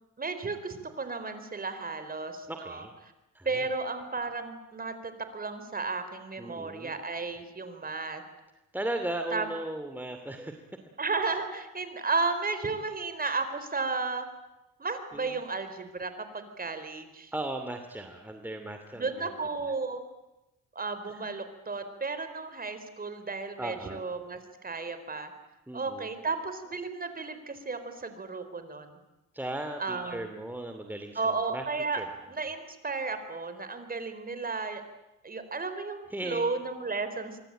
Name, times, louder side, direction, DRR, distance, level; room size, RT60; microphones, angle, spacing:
voice 1, 0.2-2.9 3.4-8.2 9.3-9.5 11.0-14.3 14.8-17.3 19.0-20.0 20.7-25.3 25.7-29.0 29.8-30.3 31.1-32.0 32.3-34.8 35.2-37.4, right 4 dB, 30° right, 9 dB, 4.3 m, -33 dB
voice 2, 2.5-2.9 3.3-3.7 6.4-6.9 8.7-10.6 15.1-15.3 17.3-19.3 19.6-19.7 21.1-21.3 23.6-24.0 25.7-26.1 29.3-31.6 31.9-32.1 36.1-36.5, right 1 dB, 5° right, 6 dB, 2.5 m, -37 dB
26.5 x 24.0 x 9.0 m, 0.97 s
cardioid pair, 90°, 30 cm